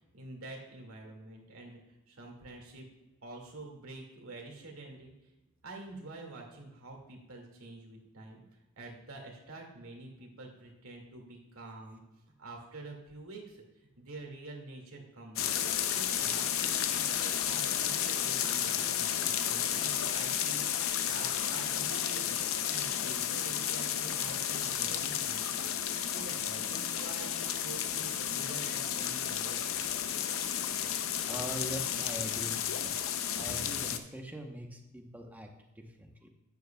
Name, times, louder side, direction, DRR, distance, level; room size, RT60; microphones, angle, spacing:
voice 1, 0.1-1.8 2.1-2.9 3.2-5.1 5.6-8.4 8.8-12.0 12.4-13.6 14.0-15.5 15.9-22.4 22.7-25.7 26.0-29.8, right 2 dB, 85° right, 1 dB, 2.1 m, -47 dB
sound 1, 15.4-34.0, left 9 dB, 70° left, 0.6 m, -32 dB
voice 2, 31.3-32.9 33.3-36.3, right 1 dB, 10° right, 3 dB, 0.9 m, -42 dB
11.0 x 9.4 x 2.3 m, 0.97 s
head